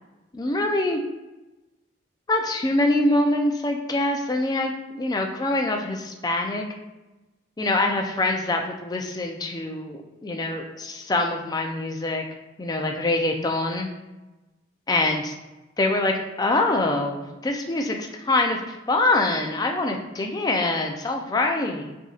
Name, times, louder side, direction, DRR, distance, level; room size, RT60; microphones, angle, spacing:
voice 1, 0.3-1.0 2.3-6.6 7.6-12.2 12.6-13.9 14.9-15.3 15.8-18.6 18.9-21.9, left 2 dB, 20° left, 3 dB, 0.4 m, -24 dB
6.2 x 2.6 x 2.4 m, 1.1 s
head